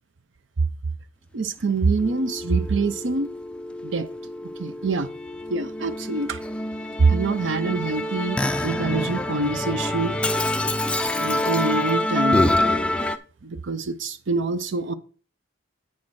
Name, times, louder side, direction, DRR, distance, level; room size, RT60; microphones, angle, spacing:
voice 1, 1.3-3.3 3.8-4.1 4.6-5.1 5.5-6.4 7.0-10.2 11.2-12.5 13.4-14.9, right 4 dB, 60° right, 0.6 m, -25 dB
Musical instrument, 2.0-13.2, left 1 dB, 5° left, 0.4 m, -26 dB
8.5 x 6.4 x 4.7 m
head